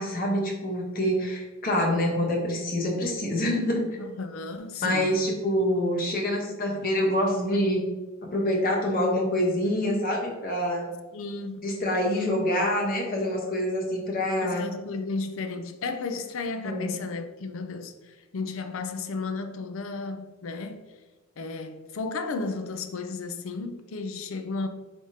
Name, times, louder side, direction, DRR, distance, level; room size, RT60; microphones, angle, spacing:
voice 1, 0.0-3.8 4.8-7.8 8.2-10.9 11.6-14.6 16.6-16.9, left 1 dB, 45° left, 0.9 m, -26 dB
voice 2, 4.0-5.2 11.1-11.7 14.4-20.8 21.4-24.7, left 3 dB, 70° left, 0.4 m, -33 dB
4.7 x 3.5 x 2.7 m
head